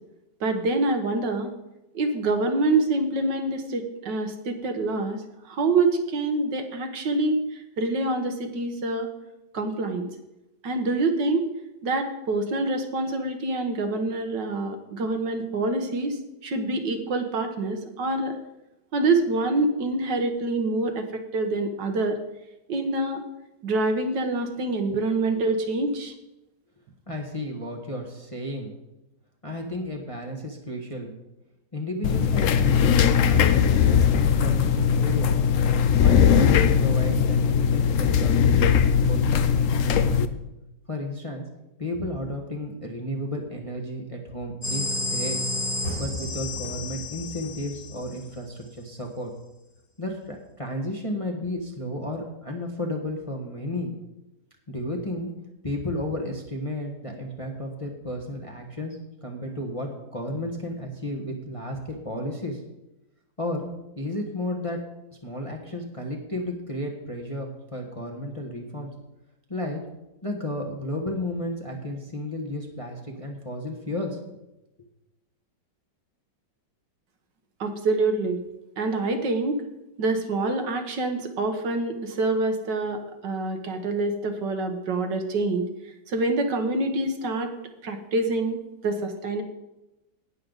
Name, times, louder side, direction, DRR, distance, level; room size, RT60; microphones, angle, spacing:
voice 1, 0.4-1.5 2.0-5.2 5.5-7.4 7.8-9.1 9.5-10.1 10.6-11.5 11.8-16.2 16.4-18.4 18.9-22.2 22.7-23.2 23.6-26.1 77.6-78.4 78.8-79.6 80.0-85.7 86.1-87.5 87.8-89.4, right 2 dB, 70° right, 6 dB, 1.7 m, -26 dB
voice 2, 27.1-28.7 29.4-31.1 31.7-35.3 36.0-38.3 38.6-40.2 40.9-41.4 41.8-45.4 46.0-49.3 50.0-53.9 54.7-55.3 55.6-62.6 63.4-63.7 64.0-64.8 65.2-68.9 69.5-69.8 70.2-74.2, left 1 dB, 20° left, 0 dB, 1.2 m, -33 dB
sound 1, 32.0-40.3, left 7 dB, 65° left, 0.8 m, -20 dB
sound 2, 44.6-48.3, left 1 dB, 50° left, 3.7 m, -31 dB
18.0 x 6.6 x 4.0 m, 0.93 s
omnidirectional pair, 2.0 m